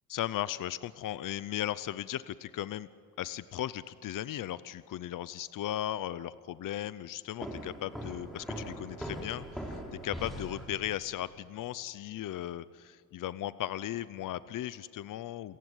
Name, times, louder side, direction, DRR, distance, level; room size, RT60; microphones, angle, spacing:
voice 1, 0.1-2.9 3.2-15.6, left 12 dB, 65° left, 15 dB, 0.7 m, -37 dB
sound 1, 7.4-11.1, equal, ahead, 3.6 m, -41 dB
28.5 x 15.5 x 9.5 m, 2.3 s
wide cardioid pair, 160°, 35 cm